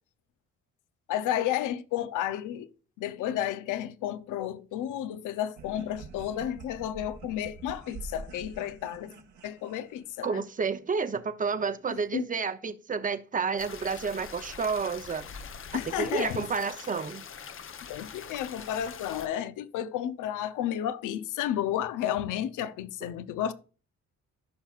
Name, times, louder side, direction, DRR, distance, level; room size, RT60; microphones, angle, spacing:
voice 1, 1.1-2.7 3.0-9.1 9.4-10.4 12.1-12.3 15.7-16.4 17.9-23.5, left 11 dB, 85° left, 0.7 m, -32 dB
sound 1, 5.6-10.3, right 4 dB, 70° right, 1.5 m, -46 dB
voice 2, 10.2-15.2 16.0-17.2, right 5 dB, 25° right, 0.7 m, -30 dB
sound 2, 13.6-19.3, left 6 dB, 45° left, 0.8 m, -44 dB
14.0 x 5.7 x 2.4 m
cardioid pair, 90°, 30 cm